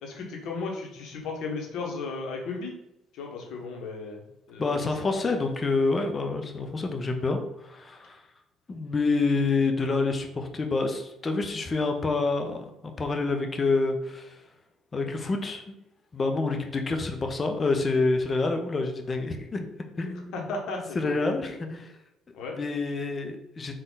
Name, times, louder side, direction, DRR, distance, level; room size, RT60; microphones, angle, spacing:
voice 1, 0.0-2.7 3.1-5.1 20.3-21.1 22.3-22.6, left 3 dB, 65° left, 0 dB, 1.1 m, -35 dB
voice 2, 4.6-8.2 8.7-14.4 14.9-15.7 16.1-19.7 20.0-20.5 20.9-21.9 22.6-23.7, left 3 dB, 35° left, 4 dB, 0.7 m, -27 dB
3.8 x 2.5 x 3.9 m, 0.87 s
hypercardioid pair, 50°, 0 cm